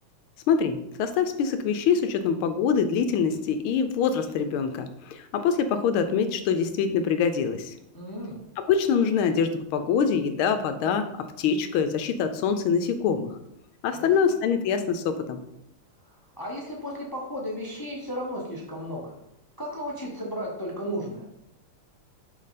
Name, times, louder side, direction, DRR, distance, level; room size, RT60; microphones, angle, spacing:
voice 1, 0.5-7.7 8.6-13.3 13.8-15.4, left 6 dB, 80° left, 9 dB, 1.4 m, -24 dB
voice 2, 7.9-8.4 13.9-14.1 16.4-19.1 19.6-21.2, equal, 30° left, -2 dB, 0.4 m, -34 dB
5.5 x 5.2 x 4.1 m, 0.81 s
omnidirectional pair, 2.4 m